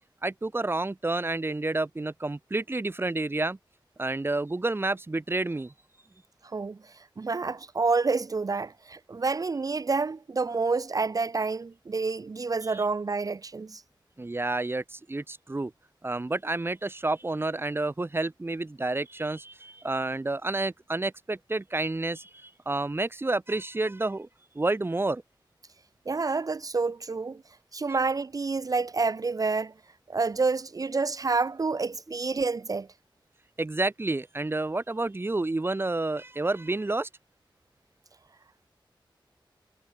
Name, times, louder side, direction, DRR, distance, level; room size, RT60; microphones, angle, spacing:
voice 1, 0.2-3.6 4.0-5.7 12.6-12.8 14.2-15.7 16.0-24.3 24.6-25.2 33.6-37.1, right 2 dB, 25° right, 1.9 m, -29 dB
voice 2, 7.2-13.8 26.1-27.4 27.7-29.7 30.1-32.9, right 4 dB, 45° right, 0.6 m, -28 dB
wide cardioid pair, 110°, 9 cm